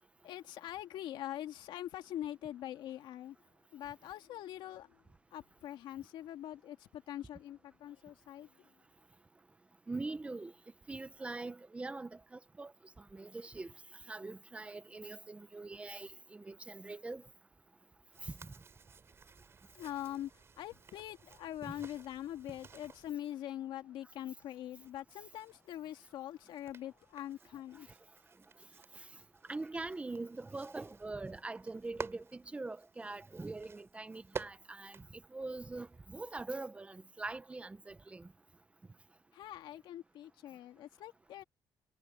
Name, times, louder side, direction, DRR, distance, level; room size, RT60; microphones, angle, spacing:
voice 1, 0.2-3.4 3.7-5.0 5.3-8.7 19.7-20.3 20.6-27.9 39.3-41.4, left 12 dB, 75° left, 2.1 m, -43 dB
voice 2, 9.9-10.5 10.9-13.7 14.1-17.2 18.2-18.5 21.6-21.7 28.9-29.1 29.5-38.3, right 3 dB, 15° right, 1.0 m, -43 dB
sound 1, 18.1-23.1 24.1-36.0, right 5 dB, 30° right, 4.6 m, -52 dB
cardioid pair, 135°, 8 cm